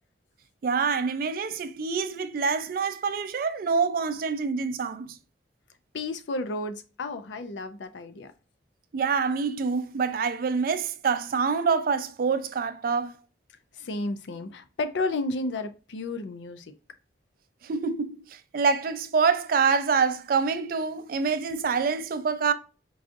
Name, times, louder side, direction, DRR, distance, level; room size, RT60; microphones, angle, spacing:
voice 1, 0.6-5.2 8.9-13.1 17.6-18.2 18.5-22.5, right 5 dB, 50° right, 0.3 m, -26 dB
voice 2, 5.9-8.3 13.7-16.7, left 2 dB, 85° left, 0.5 m, -32 dB
4.7 x 2.4 x 2.6 m
head